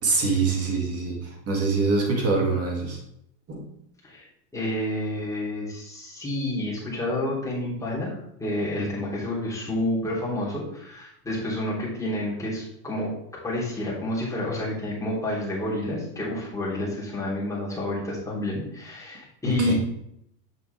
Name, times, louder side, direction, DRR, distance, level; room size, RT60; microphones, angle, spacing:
voice 1, 0.0-3.0 3.5-3.6 19.4-19.7, right 4 dB, 30° right, 0 dB, 2.4 m, -24 dB
voice 2, 4.5-19.7, left 1 dB, 5° left, -7 dB, 3.3 m, -29 dB
7.0 x 6.9 x 3.4 m, 0.74 s
supercardioid pair, 120°, 50 cm